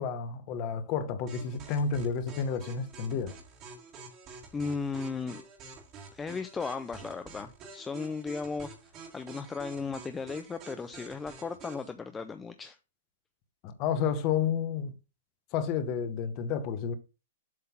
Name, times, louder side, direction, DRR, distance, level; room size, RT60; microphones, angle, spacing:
voice 1, 0.0-3.3 13.6-14.9 15.5-17.0, left 6 dB, 25° left, 0.8 m, -31 dB
sound 1, 1.3-11.9, right 4 dB, 20° right, 1.7 m, -48 dB
voice 2, 4.5-5.4 6.1-8.8 9.1-12.8, left 4 dB, 10° left, 0.3 m, -36 dB
7.6 x 3.8 x 5.8 m
hypercardioid pair, 170°, 0 cm